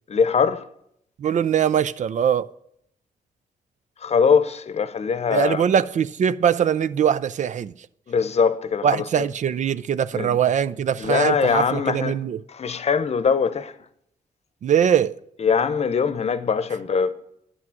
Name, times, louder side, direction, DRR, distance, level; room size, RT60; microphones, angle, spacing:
voice 1, 0.1-0.7 4.0-5.6 8.1-9.0 10.1-10.4 11.0-12.2 12.5-13.7 15.4-17.1, left 6 dB, 45° left, 0.8 m, -22 dB
voice 2, 1.2-2.5 5.3-7.7 8.8-12.4 14.6-15.1, right 8 dB, 55° right, 0.4 m, -21 dB
11.0 x 6.1 x 7.6 m
cardioid pair, 105°, 15 cm